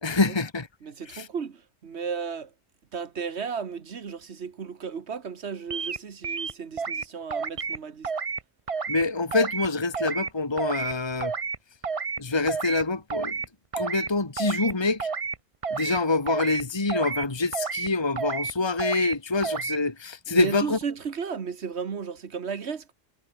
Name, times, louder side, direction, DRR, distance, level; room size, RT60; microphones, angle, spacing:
voice 1, 0.0-0.7 1.1-1.3 8.9-11.3 12.2-13.4 13.8-15.1 15.7-20.8, left 3 dB, 20° left, 1.7 m, -26 dB
voice 2, 0.8-2.5 2.9-8.1 20.3-22.9, right 6 dB, 60° right, 1.5 m, -34 dB
sound 1, 5.7-6.0 6.2-7.0 7.3-7.8 8.0-8.4 8.7-9.0 9.3-9.7 9.9-10.3 10.6-10.9 11.2-11.6 11.8-12.2 12.5-12.8 13.1-13.5 13.7-14.1 14.4-14.7 15.0-15.4 15.6-16.0 16.3-16.6 16.9-17.3 17.5-17.9 18.2-18.5 18.8-19.1 19.4-19.8, right 5 dB, 30° right, 0.7 m, -30 dB
omnidirectional pair, 1.3 m